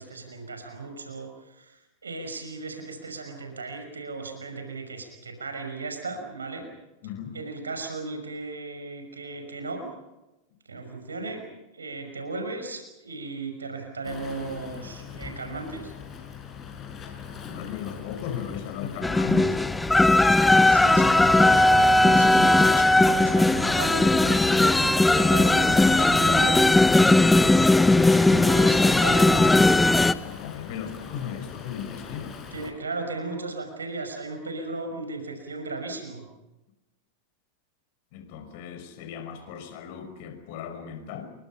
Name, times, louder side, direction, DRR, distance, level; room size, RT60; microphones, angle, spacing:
voice 1, 0.0-6.7 7.3-9.9 10.7-11.4 11.7-15.9 20.7-26.7 28.3-29.8 32.5-36.2, right 3 dB, 75° right, 5 dB, 5.8 m, -36 dB
voice 2, 7.0-7.4 17.4-19.6 28.0-28.7 30.2-32.4 38.1-41.2, left 8 dB, 50° left, 8 dB, 5.5 m, -36 dB
Waves surf, 14.0-32.7, left 6 dB, 25° left, 6.6 m, -41 dB
sound 1, 19.0-30.1, left 2 dB, 5° left, 1.0 m, -18 dB
29.5 x 24.0 x 5.7 m, 1.0 s
figure-of-eight pair, 90°, 0 cm